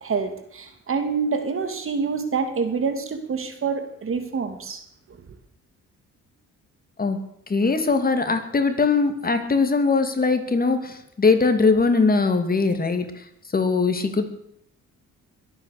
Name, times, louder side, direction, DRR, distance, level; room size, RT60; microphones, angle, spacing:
voice 1, 0.0-4.8, right 5 dB, 45° right, 8 dB, 2.8 m, -26 dB
voice 2, 7.5-13.2 13.5-14.3, left 4 dB, 30° left, 7 dB, 2.7 m, -21 dB
22.0 x 9.2 x 6.7 m, 0.70 s
cardioid pair, 90°, 30 cm